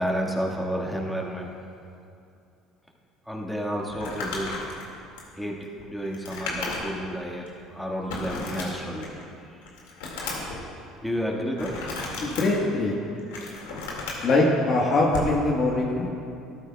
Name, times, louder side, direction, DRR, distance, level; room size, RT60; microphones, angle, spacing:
voice 1, 0.0-1.5 3.3-4.6 5.4-5.6 5.9-9.1 11.0-12.2, equal, ahead, -1 dB, 1.7 m, -31 dB
Crumpling crinkling, 3.9-7.1 7.5-7.6 8.1-9.2 9.6-10.6 11.6-12.4 13.1-14.3 15.1-15.3, left 3 dB, 90° left, 2.1 m, -34 dB
voice 2, 12.2-12.9 14.2-16.1, left 2 dB, 50° left, -3 dB, 1.4 m, -22 dB
13.0 x 13.0 x 2.3 m, 2.5 s
supercardioid pair, 90°, 0 cm